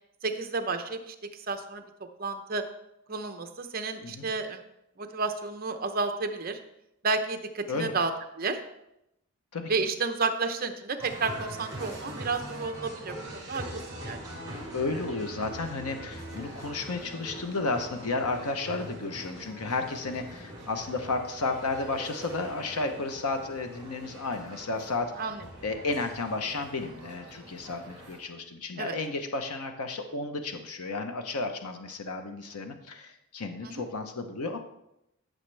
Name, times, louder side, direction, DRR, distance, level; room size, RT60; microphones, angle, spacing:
voice 1, 0.2-1.8 2.2-2.6 3.1-4.6 5.0-6.6 7.0-8.1 8.4-8.6 9.7-13.6 13.9-14.2 25.2-25.4 28.8-29.0 33.6-33.8, right 4 dB, 40° right, 7 dB, 0.7 m, -31 dB
sound 1, 11.0-28.2, right 1 dB, 20° right, 4.2 m, -43 dB
voice 2, 14.7-25.2 25.6-34.6, left 3 dB, 85° left, 6 dB, 0.8 m, -33 dB
14.5 x 6.5 x 3.3 m, 0.83 s
head